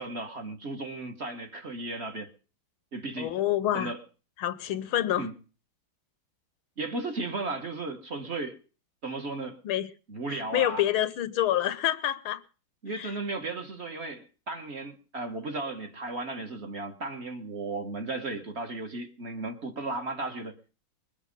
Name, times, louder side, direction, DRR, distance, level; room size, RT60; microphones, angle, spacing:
voice 1, 0.0-2.3 2.9-3.4 3.7-4.0 5.2-5.3 6.8-8.6 9.0-9.6 10.1-10.8 12.8-20.5, right 2 dB, 35° right, 1.4 m, -35 dB
voice 2, 3.2-3.9 4.4-5.3 9.6-9.9 10.3-12.4 12.9-13.1, left 12 dB, 90° left, 1.8 m, -27 dB
22.0 x 8.7 x 5.3 m
omnidirectional pair, 2.2 m